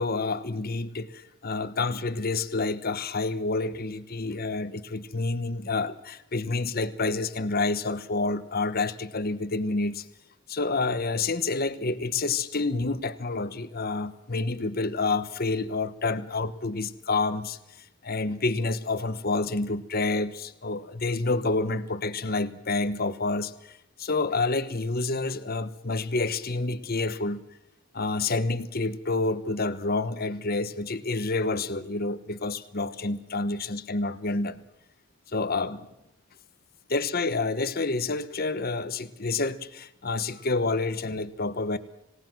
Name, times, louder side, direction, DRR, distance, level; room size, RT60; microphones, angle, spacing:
voice 1, 0.0-10.0 10.5-23.7 24.0-27.4 27.9-34.6 35.3-35.9 36.9-41.8, left 3 dB, 45° left, 12 dB, 1.1 m, -28 dB
26.5 x 18.0 x 6.1 m, 0.82 s
head